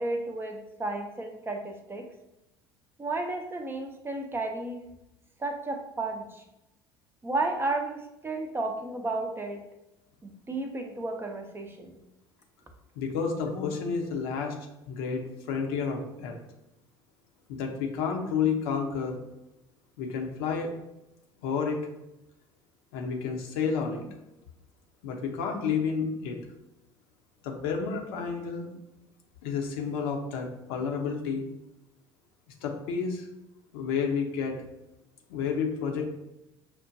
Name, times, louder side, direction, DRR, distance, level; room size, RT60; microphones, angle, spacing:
voice 1, 0.0-2.1 3.0-4.8 5.4-6.4 7.2-9.6 10.2-11.9, right 2 dB, 15° right, 4 dB, 0.6 m, -33 dB
voice 2, 13.0-14.5 14.9-16.4 17.5-19.2 20.0-20.7 21.4-21.8 22.9-24.1 25.0-26.4 27.4-28.7 29.4-31.4 32.6-33.3 33.7-34.6 35.3-36.1, left 6 dB, 65° left, 2 dB, 0.7 m, -30 dB
5.9 x 2.1 x 2.6 m, 0.91 s
figure-of-eight pair, 70°, 13 cm